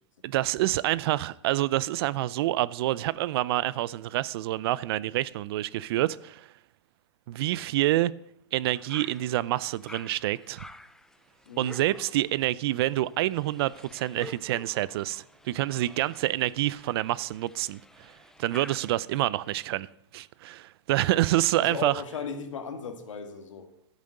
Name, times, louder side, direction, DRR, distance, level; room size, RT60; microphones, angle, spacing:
voice 1, 0.2-6.5 7.3-8.1 8.5-10.6 11.6-18.1 18.4-19.9 20.1-22.0, right 15 dB, 55° right, 0.5 m, -27 dB
sound 1, 8.7-19.7, left 2 dB, 5° left, 0.4 m, -50 dB
voice 2, 21.6-23.7, left 6 dB, 85° left, 2.0 m, -36 dB
12.0 x 8.4 x 6.5 m
hypercardioid pair, 140°, 16 cm